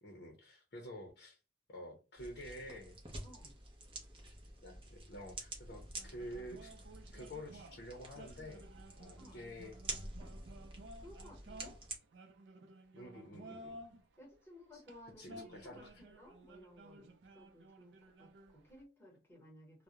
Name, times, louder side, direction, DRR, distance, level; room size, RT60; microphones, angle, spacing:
voice 1, 0.0-1.4 1.7-3.0 4.6-6.8 7.1-8.7 9.0-9.8 12.9-13.8 14.7-14.8 15.2-16.0, equal, 65° left, 0.6 m, -49 dB
sound 1, 2.2-12.0, right 2 dB, 30° right, 0.6 m, -49 dB
voice 2, 3.2-3.6 9.2-9.4 11.0-11.8 14.2-19.8, left 1 dB, 15° left, 1.0 m, -58 dB
sound 2, 5.9-14.0 14.7-18.8, right 1 dB, 85° right, 0.4 m, -55 dB
2.3 x 2.0 x 2.8 m
head